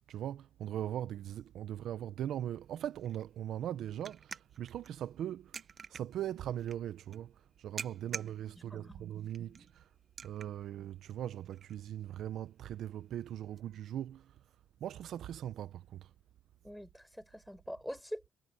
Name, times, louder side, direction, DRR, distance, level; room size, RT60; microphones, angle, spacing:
voice 1, 0.1-5.6 5.9-9.9 10.2-14.3 14.8-16.1, right 11 dB, 75° right, 0.7 m, -40 dB
sound 1, 2.3-13.6, right 6 dB, 45° right, 1.0 m, -51 dB
voice 2, 8.7-9.0 9.5-9.6 16.6-18.3, equal, ahead, 4.7 m, -45 dB
cardioid pair, 90°, 0 cm